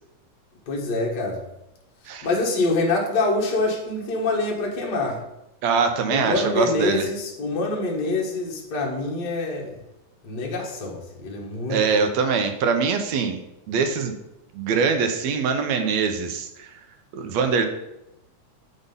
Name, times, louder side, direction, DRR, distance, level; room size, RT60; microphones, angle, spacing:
voice 1, 0.7-1.4 2.2-5.2 6.1-9.7 10.2-12.0, left 2 dB, 45° left, -2 dB, 1.4 m, -25 dB
voice 2, 5.6-7.1 11.7-13.4 13.7-14.1 14.6-16.7 17.1-17.7, right 5 dB, 70° right, 7 dB, 1.8 m, -23 dB
8.2 x 5.2 x 5.3 m, 0.88 s
omnidirectional pair, 3.5 m